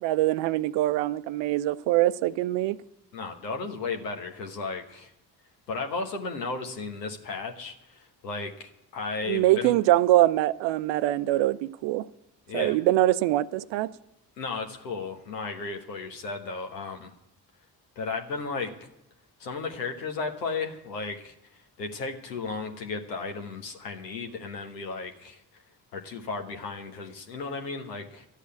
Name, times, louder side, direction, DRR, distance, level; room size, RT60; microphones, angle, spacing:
voice 1, 0.0-2.8 9.3-12.0 12.5-13.9, right 15 dB, 65° right, 0.6 m, -23 dB
voice 2, 3.1-5.1 5.7-9.7 12.5-12.8 14.4-17.1 18.0-18.7 19.4-25.6 25.9-28.3, left 4 dB, 90° left, 1.3 m, -34 dB
12.5 x 8.3 x 9.4 m
hypercardioid pair, 45°, 48 cm